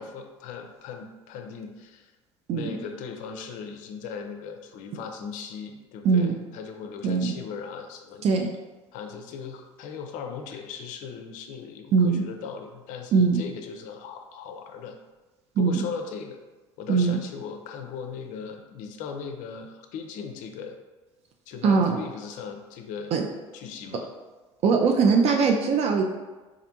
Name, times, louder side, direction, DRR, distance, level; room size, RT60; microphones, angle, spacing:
voice 1, 0.0-2.1 2.5-8.3 8.9-15.0 15.6-16.4 16.8-20.7 21.5-23.1 23.5-24.1, left 6 dB, 55° left, 5 dB, 0.4 m, -38 dB
voice 2, 6.0-6.4 7.0-7.3 8.2-8.5 11.9-12.2 13.1-13.4 15.6-15.9 16.9-17.2 21.6-22.0 23.1-23.3 24.6-26.0, right 5 dB, 45° right, 2 dB, 0.4 m, -21 dB
4.2 x 2.5 x 2.7 m, 1.2 s
hypercardioid pair, 65°, 16 cm